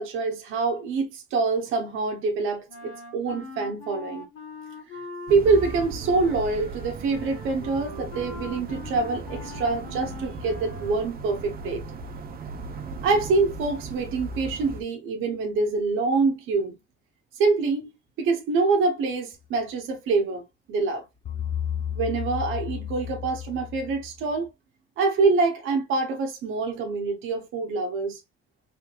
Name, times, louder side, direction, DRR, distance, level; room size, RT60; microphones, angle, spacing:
voice 1, 0.0-4.2 5.3-11.8 13.0-16.7 17.3-17.9 18.2-20.4 20.7-21.0 22.0-24.5 25.0-28.2, right 4 dB, 85° right, 0.8 m, -25 dB
Wind instrument woodwind instrument, 2.7-11.3, left 2 dB, 85° left, 1.6 m, -42 dB
sound 1, 5.3-14.8, right 3 dB, 50° right, 0.8 m, -37 dB
sound 2, 21.2-24.4, left 9 dB, 45° left, 0.5 m, -32 dB
3.3 x 3.2 x 2.3 m
cardioid pair, 90°, 20 cm